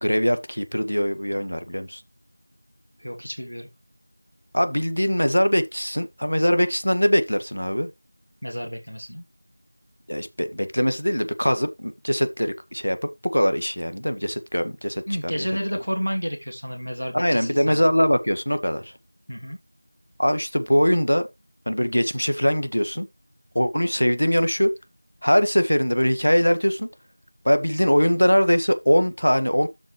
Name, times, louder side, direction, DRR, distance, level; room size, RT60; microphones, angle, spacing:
voice 1, 0.0-2.0 4.5-7.9 10.1-15.5 17.1-18.9 20.2-21.3 21.7-23.1 23.5-24.7 25.2-26.9 27.4-29.7, equal, 65° left, 1.6 m, -22 dB
voice 2, 3.0-3.7 8.4-9.2 15.1-17.8 19.3-19.6, equal, 85° left, 2.7 m, -30 dB
13.5 x 4.5 x 3.2 m
figure-of-eight pair, 175°, 0 cm